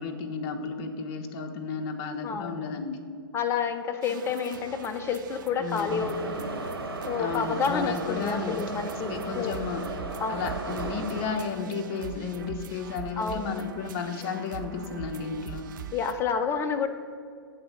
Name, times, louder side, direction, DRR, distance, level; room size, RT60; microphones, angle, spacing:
voice 1, 0.0-3.0 5.6-6.0 7.2-8.6 9.1-9.8 10.3-15.7, left 5 dB, 40° left, 4 dB, 0.9 m, -33 dB
voice 2, 2.2-2.9 3.3-6.6 7.1-9.5 10.2-10.5 13.2-13.6 15.9-16.9, left 6 dB, 20° left, 7 dB, 0.6 m, -30 dB
sound 1, 4.0-16.1, right 8 dB, 55° right, 0.6 m, -43 dB
Subway metro underground, 5.9-11.4, right 2 dB, 85° right, 1.1 m, -35 dB
7.7 x 4.1 x 6.9 m, 2.3 s
hypercardioid pair, 115°, 12 cm